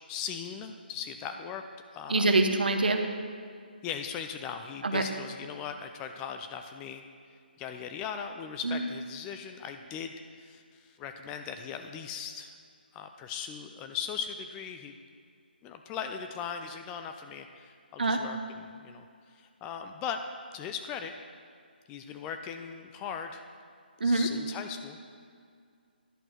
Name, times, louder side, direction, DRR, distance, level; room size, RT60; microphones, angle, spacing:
voice 1, 0.1-1.6 1.9-2.3 3.8-7.0 7.6-12.5 12.9-14.9 15.6-20.2 20.5-21.1 21.9-23.4 24.0-25.0, left 7 dB, 15° left, 6 dB, 0.3 m, -39 dB
voice 2, 2.1-3.0 4.8-5.0 8.6-8.8 18.0-18.2 24.0-24.3, right 2 dB, 60° right, 6 dB, 1.0 m, -24 dB
11.0 x 6.1 x 6.0 m, 2.2 s
figure-of-eight pair, 145°, 6 cm